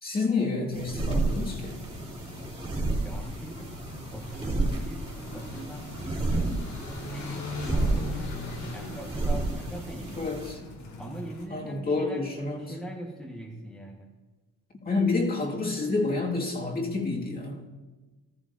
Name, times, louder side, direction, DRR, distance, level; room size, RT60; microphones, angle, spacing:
voice 1, 0.0-1.8 10.2-10.6 11.5-12.8 14.8-17.6, left 3 dB, 30° left, -1 dB, 2.2 m, -29 dB
sound 1, 0.7-10.5, right 2 dB, 20° right, 3.0 m, -31 dB
sound 2, 1.3-11.5, left 3 dB, 65° left, 2.2 m, -40 dB
voice 2, 3.0-6.5 7.0-8.4 8.7-10.3 11.0-14.1, right 1 dB, ahead, -2 dB, 1.5 m, -42 dB
14.5 x 14.0 x 2.7 m, 1.2 s
cardioid pair, 90°, 30 cm